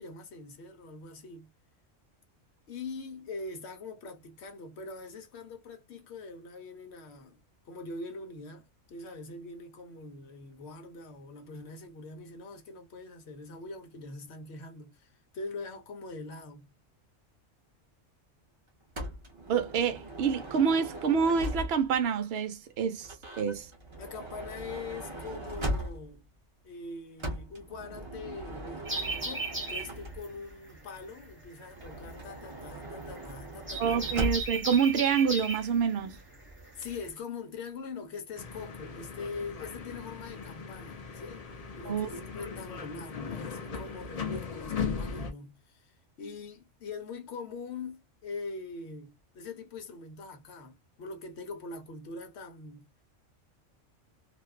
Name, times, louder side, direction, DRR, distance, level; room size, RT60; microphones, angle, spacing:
voice 1, 0.0-1.5 2.7-7.4 7.7-16.7 24.0-26.3 26.6-34.0 36.7-41.4 41.8-53.1, left 3 dB, 65° left, 1.0 m, -43 dB
Motor vehicle (road) / Sliding door, 18.9-22.0 23.0-26.3 27.2-30.5 31.7-34.7, equal, 35° right, 0.5 m, -39 dB
voice 2, 19.5-23.7 33.8-36.2 41.8-42.2, right 7 dB, 65° right, 0.8 m, -27 dB
sound 1, 28.8-37.1, right 3 dB, 10° right, 0.9 m, -37 dB
sound 2, 38.4-45.3, left 6 dB, 45° left, 0.5 m, -38 dB
2.5 x 2.3 x 2.2 m
omnidirectional pair, 1.3 m